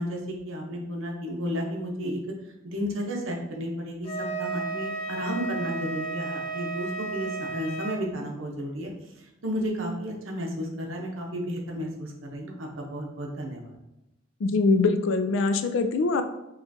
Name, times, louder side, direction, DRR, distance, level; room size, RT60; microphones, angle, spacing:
voice 1, 0.0-2.2 2.6-8.9 9.4-13.7, equal, 70° right, 0 dB, 0.8 m, -32 dB
Wind instrument woodwind instrument, 4.0-8.0, right 3 dB, 30° left, 0.7 m, -33 dB
voice 2, 14.4-16.2, left 3 dB, 65° left, 8 dB, 0.4 m, -23 dB
5.5 x 2.4 x 2.7 m, 0.90 s
head